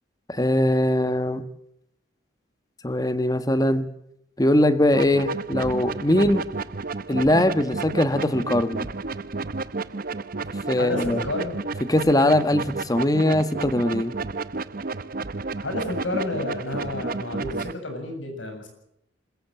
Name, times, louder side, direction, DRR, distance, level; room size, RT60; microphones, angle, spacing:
voice 1, 0.3-1.4 2.8-3.9 4.4-6.5 7.1-8.9 10.7-11.2 11.9-14.1, left 1 dB, 20° left, 11 dB, 1.3 m, -21 dB
sound 1, 4.9-17.7, right 3 dB, 50° right, 0.8 m, -32 dB
voice 2, 10.8-11.6 15.6-18.7, left 2 dB, 90° left, 5 dB, 7.5 m, -30 dB
27.0 x 14.5 x 7.8 m, 0.78 s
head